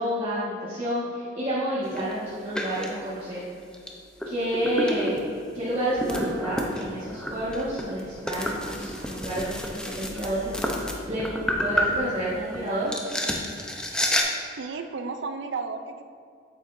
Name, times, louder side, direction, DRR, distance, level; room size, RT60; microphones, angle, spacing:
voice 1, 0.0-3.4 4.2-5.1 5.5-10.5 11.1-11.2 11.6-12.9, right 1 dB, 30° right, -11 dB, 1.4 m, -29 dB
sound 1, 1.8-2.1 2.5-2.9 3.7-3.9 4.2-12.6 12.9-14.2, left 1 dB, 5° left, 0.6 m, -30 dB
voice 2, 14.6-16.0, right 4 dB, 70° right, 8 dB, 0.5 m, -33 dB
8.2 x 8.1 x 2.6 m, 2.2 s
head